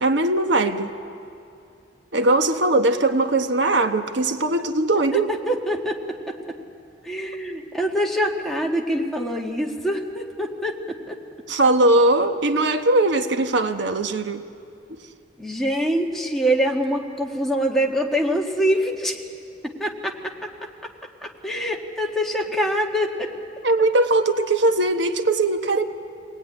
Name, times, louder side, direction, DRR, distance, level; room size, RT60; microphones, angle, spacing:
voice 1, 0.0-0.9 2.1-5.3 11.5-14.4 14.9-15.0 23.6-25.9, right 2 dB, 70° right, 6 dB, 1.0 m, -20 dB
voice 2, 5.5-6.6 7.0-11.2 15.4-19.2 19.8-20.5 21.2-23.3, equal, ahead, -1 dB, 1.7 m, -25 dB
24.5 x 19.0 x 9.7 m, 2.5 s
head